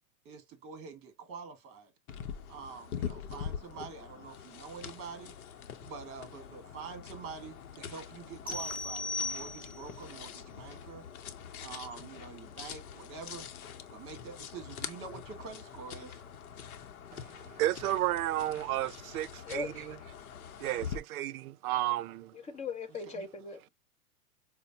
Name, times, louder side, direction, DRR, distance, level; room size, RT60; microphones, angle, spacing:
voice 1, 0.2-1.9 2.5-5.4 5.8-11.1 11.6-13.5 13.9-16.2 23.1-23.2, right 5 dB, 30° right, 1.3 m, -46 dB
sound 1, 2.1-21.0, left 8 dB, 80° left, 0.7 m, -44 dB
sound 2, 8.5-10.0, left 2 dB, 5° right, 1.2 m, -37 dB
voice 2, 17.1-20.0 20.6-22.4, right 14 dB, 75° right, 0.5 m, -33 dB
voice 3, 19.5-19.9 22.3-23.7, left 4 dB, 15° left, 0.7 m, -39 dB
5.0 x 2.1 x 2.6 m
hypercardioid pair, 115°, 43 cm